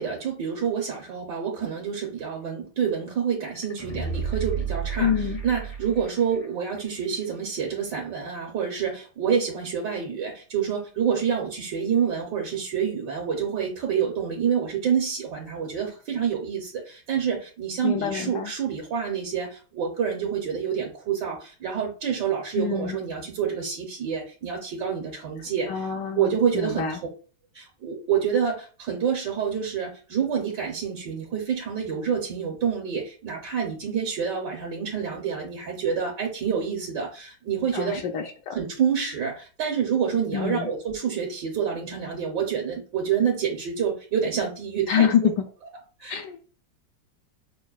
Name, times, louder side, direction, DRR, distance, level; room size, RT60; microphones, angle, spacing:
voice 1, 0.0-25.9 26.1-27.0 27.5-38.1 38.5-45.3 46.0-46.2, right 7 dB, 70° right, -1 dB, 1.5 m, -27 dB
sound 1, 3.5-6.4 6.8-6.9, right 6 dB, 50° left, 0.4 m, -31 dB
voice 2, 5.0-5.4 17.8-18.5 22.6-23.0 25.7-27.0 37.7-38.6 40.3-40.7 44.9-45.5 46.1-46.4, left 8 dB, 75° left, 4 dB, 1.2 m, -26 dB
6.1 x 2.2 x 2.3 m, 0.37 s
omnidirectional pair, 2.0 m